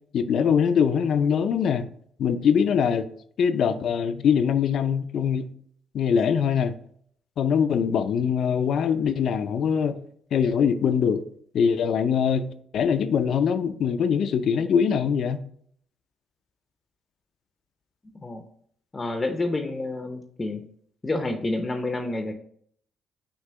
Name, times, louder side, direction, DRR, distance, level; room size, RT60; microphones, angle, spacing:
voice 1, 0.1-1.9 2.2-3.1 3.4-5.5 5.9-6.8 7.4-10.0 10.3-11.2 11.5-15.4, left 7 dB, 65° left, 0.4 m, -23 dB
voice 2, 18.9-20.7 21.0-22.3, left 2 dB, 25° left, 0.6 m, -29 dB
6.1 x 2.9 x 5.5 m
cardioid pair, 90°, 0 cm